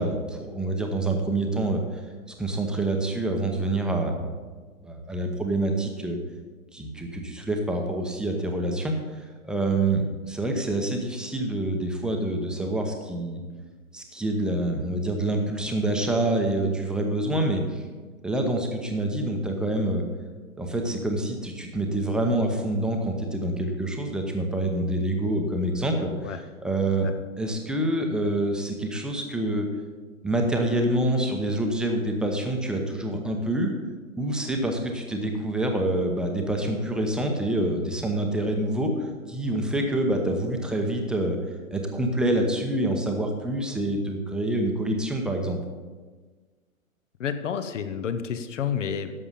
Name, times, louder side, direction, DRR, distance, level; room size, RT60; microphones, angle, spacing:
voice 1, 0.0-2.0 2.4-4.2 4.8-6.2 6.7-13.4 13.9-17.8 18.2-20.0 20.6-26.3 26.6-27.1 27.4-29.7 30.2-33.7 34.2-41.4 41.7-45.6, right 1 dB, ahead, 2 dB, 0.8 m, -26 dB
voice 2, 47.2-49.1, left 7 dB, 60° left, 10 dB, 1.0 m, -30 dB
11.0 x 7.0 x 5.6 m, 1.4 s
figure-of-eight pair, 120°, 41 cm